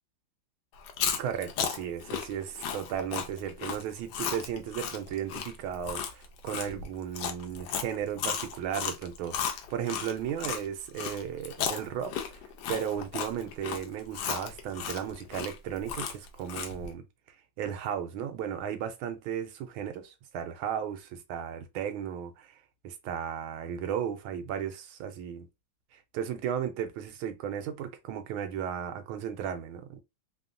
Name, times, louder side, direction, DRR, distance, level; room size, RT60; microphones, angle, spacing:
Chewing mastication, 0.8-10.6 11.0-16.9, left 7 dB, 70° left, 1.0 m, -34 dB
voice 1, 1.2-12.4 12.7-17.1 17.6-22.6 22.8-25.5 25.9-30.0, right 9 dB, 85° right, 1.4 m, -35 dB
3.4 x 2.2 x 2.5 m
omnidirectional pair, 2.3 m